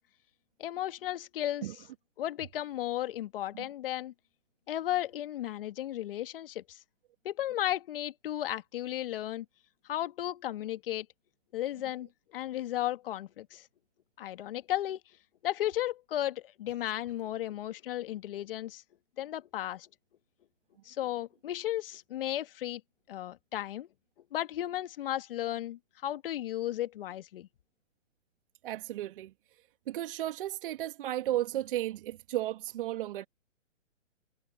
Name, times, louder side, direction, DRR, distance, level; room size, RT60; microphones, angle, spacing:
voice 1, 0.6-1.7 2.2-4.1 4.7-6.8 7.2-9.5 9.9-11.1 11.5-13.7 14.2-15.0 15.4-18.8 19.2-19.9 20.9-22.8 23.1-23.9 24.3-27.5, left 13 dB, 45° left, 2.1 m, -34 dB
voice 2, 28.6-29.3 29.9-33.3, right 13 dB, 45° right, 2.3 m, -34 dB
figure-of-eight pair, 135°, 39 cm